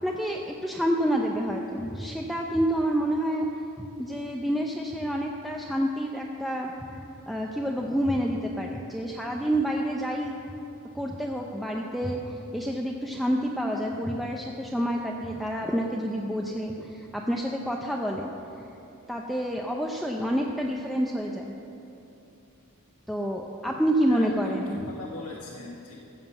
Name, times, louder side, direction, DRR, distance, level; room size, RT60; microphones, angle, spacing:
voice 1, 0.0-3.5 3.8-7.0 7.3-10.3 10.9-18.3 19.1-21.5 23.1-24.8, equal, ahead, -1 dB, 0.6 m, -28 dB
voice 2, 24.1-26.0, left 3 dB, 75° left, -3 dB, 1.3 m, -41 dB
14.5 x 7.4 x 7.0 m, 2.9 s
head